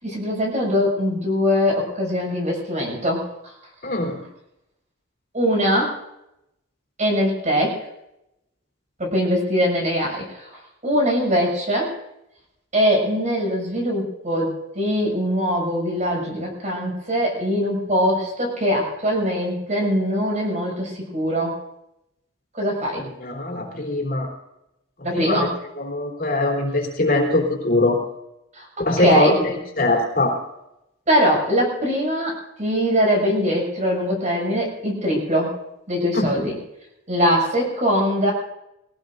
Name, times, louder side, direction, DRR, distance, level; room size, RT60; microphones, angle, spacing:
voice 1, 0.0-3.5 5.3-6.0 7.0-7.8 9.0-10.5 10.8-12.0 12.7-21.6 22.5-23.1 25.0-25.6 28.5-29.4 31.1-35.6 35.9-36.6 37.1-38.3, equal, 40° right, -1 dB, 7.1 m, -22 dB
voice 2, 3.8-4.2 23.2-24.3 25.1-25.5 25.8-28.0 28.8-30.4 36.1-36.3, left 2 dB, 50° left, 0 dB, 3.5 m, -22 dB
23.0 x 17.5 x 2.7 m, 0.86 s
head